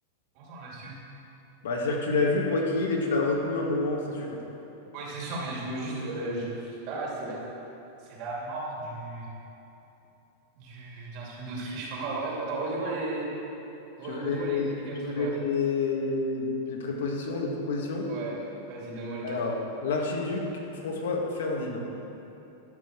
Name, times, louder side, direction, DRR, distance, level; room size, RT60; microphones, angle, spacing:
voice 1, 0.3-0.9 4.9-7.4 8.0-9.3 10.6-13.3 14.0-15.3 17.3-17.4 18.0-19.4, right 2 dB, 35° right, -4 dB, 2.6 m, -35 dB
voice 2, 1.6-4.4 14.0-18.1 19.2-19.6 19.8-20.5 20.7-21.8, left 3 dB, 80° left, 0 dB, 1.8 m, -28 dB
12.0 x 5.6 x 8.1 m, 2.9 s
supercardioid pair, 180°, 0 cm